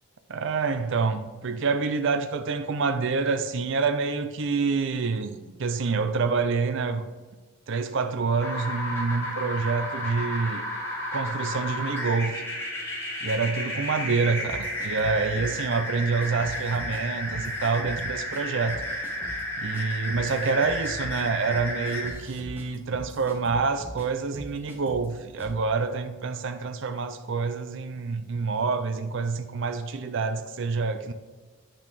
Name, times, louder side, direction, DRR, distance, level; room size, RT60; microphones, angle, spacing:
voice 1, 0.3-7.0 7.7-10.7 11.1-12.4 13.2-18.8 19.6-31.1, right 4 dB, 55° right, 0.5 m, -27 dB
sound 1, 8.4-22.1, left 1 dB, 10° left, 2.3 m, -32 dB
sound 2, 14.4-15.6 16.2-17.0 17.3-18.4 18.7-19.4 19.7-19.8 20.1-24.1 24.3-25.1 25.4-25.6, equal, 10° right, 1.4 m, -42 dB
8.6 x 6.0 x 4.1 m
head